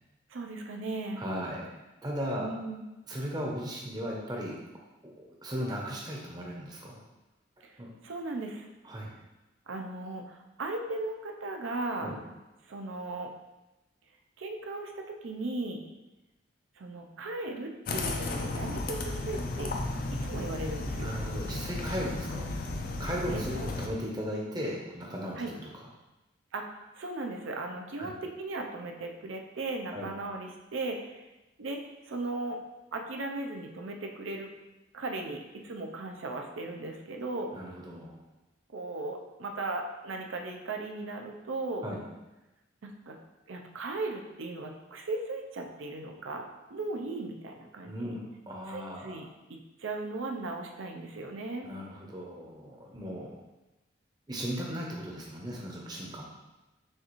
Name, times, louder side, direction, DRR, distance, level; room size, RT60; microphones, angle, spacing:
voice 1, 0.3-1.2 2.4-2.8 7.6-7.7 8.0-8.7 9.7-12.1 12.7-13.3 14.4-15.9 16.8-19.7 20.2-21.1 23.3-23.7 25.4-25.5 26.5-31.2 31.6-31.8 32.1-32.6 32.9-34.5 34.9-37.5 38.7-41.8 42.8-43.2 43.5-48.1 48.7-49.2 49.8-51.7, right 2 dB, 80° right, 3 dB, 0.5 m, -37 dB
voice 2, 1.2-1.7 2.0-2.5 3.1-4.6 5.0-5.1 5.4-7.0 7.8-7.9 8.8-9.1 12.0-12.2 21.0-22.5 23.0-25.7 28.0-28.1 29.9-30.1 37.5-38.2 41.8-42.0 47.8-48.2 48.5-49.2 51.6-53.3 54.3-56.2, equal, 20° right, -2 dB, 0.7 m, -36 dB
sound 1, 17.9-23.9, left 2 dB, 45° left, 0.4 m, -34 dB
6.4 x 2.5 x 3.0 m, 1.0 s
head